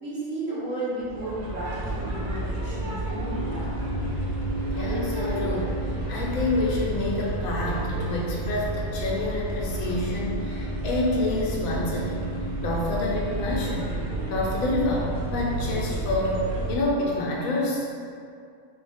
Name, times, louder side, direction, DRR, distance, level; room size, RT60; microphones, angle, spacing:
voice 1, 0.0-3.7, right 1 dB, 65° right, -8 dB, 1.3 m, -33 dB
sound 1, 1.0-16.7, right 2 dB, 80° right, 0.3 m, -30 dB
voice 2, 4.7-12.2 12.6-13.9 14.3-17.9, left 2 dB, 75° left, -4 dB, 1.1 m, -28 dB
sound 2, 6.2-16.9, right 3 dB, 45° left, 0.7 m, -41 dB
3.8 x 2.4 x 3.4 m, 2.4 s
omnidirectional pair, 1.5 m